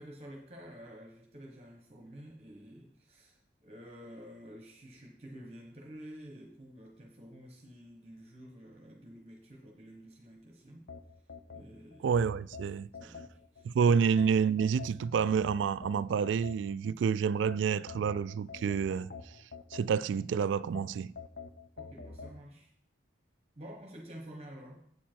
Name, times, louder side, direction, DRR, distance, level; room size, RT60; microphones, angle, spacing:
voice 1, 0.0-10.8 11.5-12.2 13.0-14.0 21.8-22.7 23.5-24.8, equal, 35° right, 1.1 m, -50 dB
sound 1, 10.9-13.7 14.2-16.9 17.5-20.2 20.7-22.4, left 4 dB, 60° left, 0.7 m, -47 dB
voice 2, 12.0-12.9 13.6-19.1 19.7-21.1, right 6 dB, 85° right, 0.3 m, -28 dB
8.2 x 7.3 x 4.5 m
head